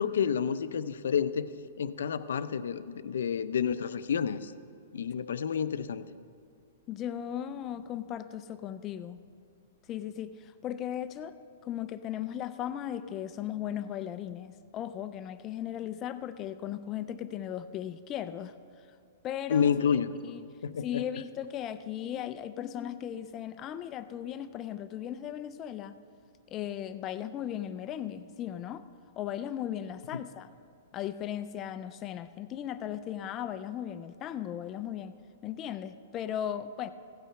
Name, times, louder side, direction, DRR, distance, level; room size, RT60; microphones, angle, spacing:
voice 1, 0.0-1.5 1.8-4.5 4.9-6.0 19.5-20.1 20.6-21.0 30.1-30.2, left 7 dB, 85° left, 13 dB, 0.5 m, -29 dB
voice 2, 6.9-9.2 9.9-11.4 11.6-18.5 19.2-20.4 20.8-26.0 26.5-28.8 29.2-30.5 30.9-35.1 35.4-36.9, left 10 dB, 20° left, 12 dB, 0.3 m, -37 dB
15.5 x 8.3 x 5.7 m, 2.4 s
hypercardioid pair, 175°, 0 cm